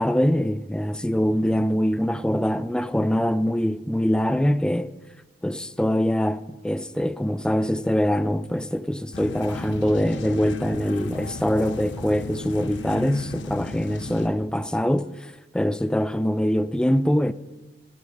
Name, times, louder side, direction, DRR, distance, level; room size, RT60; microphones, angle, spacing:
voice 1, 0.0-4.9 5.4-17.3, equal, 5° left, 0.3 m, -23 dB
sound 1, 9.1-14.3, left 3 dB, 85° left, 0.8 m, -35 dB
13.0 x 10.5 x 5.6 m
head